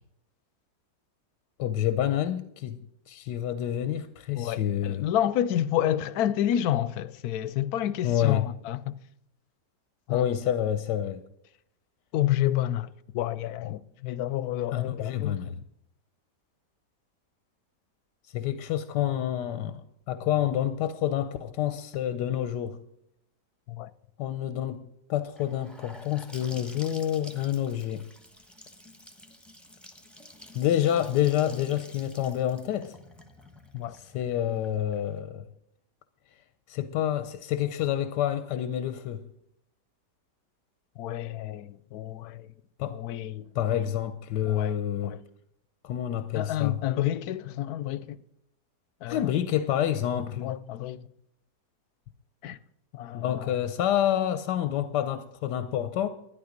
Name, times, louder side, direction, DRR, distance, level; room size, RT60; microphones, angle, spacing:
voice 1, 1.6-2.8 3.1-5.1 8.0-8.5 10.1-11.3 14.7-15.6 18.2-22.8 24.2-28.1 30.5-33.0 33.9-35.5 36.7-39.3 42.8-43.0 43.5-45.2 45.8-46.8 49.1-50.6 53.1-56.1, left 11 dB, 90° left, 1.3 m, -28 dB
voice 2, 4.3-9.0 10.1-10.3 12.1-15.4 23.7-23.9 33.7-34.0 41.0-42.5 42.9-43.8 44.5-44.7 45.0-45.2 46.3-48.2 49.0-49.2 50.4-51.1 52.4-52.6 52.9-53.5, left 12 dB, 70° left, 1.0 m, -29 dB
Gurgling / Sink (filling or washing) / Bathtub (filling or washing), 25.4-35.2, left 1 dB, ahead, 1.0 m, -50 dB
12.5 x 10.5 x 5.1 m
omnidirectional pair, 1.8 m